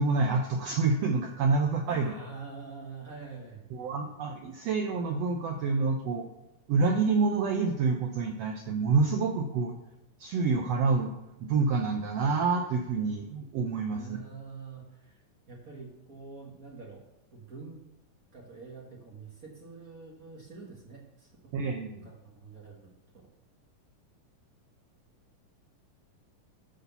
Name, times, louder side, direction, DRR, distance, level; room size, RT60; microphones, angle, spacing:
voice 1, 0.0-2.2 3.7-6.3 6.7-9.8 10.2-11.1 11.4-14.2 21.5-22.1, right 4 dB, 85° right, 3 dB, 1.4 m, -27 dB
voice 2, 1.9-3.6 13.9-17.0 17.3-17.9 18.3-21.3 21.6-22.9, right 4 dB, 50° right, -2 dB, 1.0 m, -46 dB
11.5 x 4.3 x 6.8 m, 0.89 s
omnidirectional pair, 3.8 m